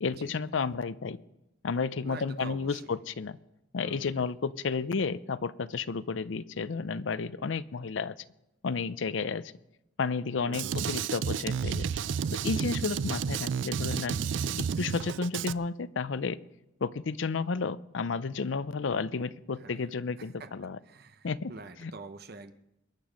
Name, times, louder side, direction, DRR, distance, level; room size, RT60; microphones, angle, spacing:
voice 1, 0.0-1.2 1.6-3.4 3.7-8.1 8.6-9.5 10.0-11.9 12.4-14.2 14.8-16.4 16.8-20.8 21.2-21.5 21.8-21.9, left 4 dB, 75° left, 16 dB, 0.6 m, -32 dB
voice 2, 2.0-3.0 3.8-4.2 10.4-10.8 19.5-19.8 20.2-20.5 20.8-22.5, right 3 dB, 55° right, 9 dB, 0.8 m, -46 dB
Drum kit, 10.5-15.5, right 6 dB, 70° right, 0.4 m, -31 dB
22.0 x 9.4 x 5.1 m, 0.87 s
head